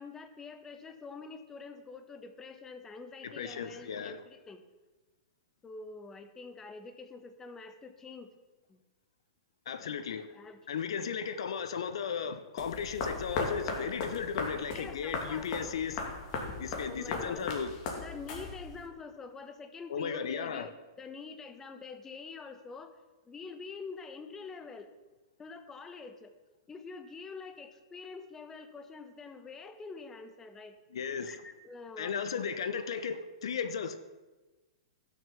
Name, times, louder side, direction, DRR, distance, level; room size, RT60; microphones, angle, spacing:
voice 1, 0.0-4.6 5.6-8.3 8.7-8.8 10.3-10.6 11.0-11.1 14.7-15.5 16.9-17.6 17.9-22.9 23.3-24.9 25.4-26.3 26.7-30.8 31.3-32.6, left 4 dB, 15° left, 8 dB, 1.1 m, -46 dB
voice 2, 3.2-4.2 9.7-10.3 10.7-16.1 16.6-17.7 19.9-20.7 30.9-31.4 32.0-34.0, left 6 dB, 70° left, 10 dB, 0.9 m, -35 dB
sound 1, 12.6-18.9, left 4 dB, 45° left, 2.6 m, -37 dB
12.0 x 6.5 x 7.0 m, 1.2 s
hypercardioid pair, 120°, 3 cm